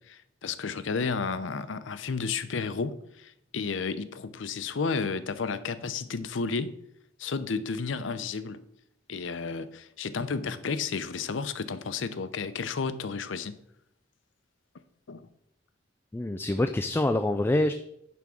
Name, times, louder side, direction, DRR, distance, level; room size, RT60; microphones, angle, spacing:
voice 1, 0.1-6.8 7.2-8.6 9.1-13.6 15.1-15.3, left 5 dB, 90° left, 13 dB, 0.6 m, -32 dB
voice 2, 16.1-17.7, left 1 dB, 10° left, 8 dB, 0.3 m, -25 dB
10.5 x 3.6 x 6.2 m, 0.77 s
head